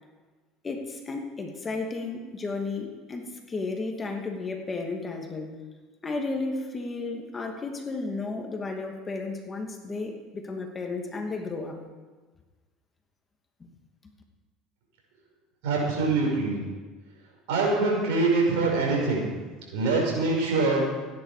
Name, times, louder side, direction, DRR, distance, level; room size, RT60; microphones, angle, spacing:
voice 1, 0.6-5.6 6.0-11.8, left 3 dB, 25° left, 2 dB, 2.6 m, -33 dB
voice 2, 15.6-16.6 17.5-19.3 19.7-20.9, right 3 dB, 75° right, -2 dB, 5.6 m, -24 dB
15.5 x 10.5 x 5.1 m, 1.3 s
hypercardioid pair, 80°, 0 cm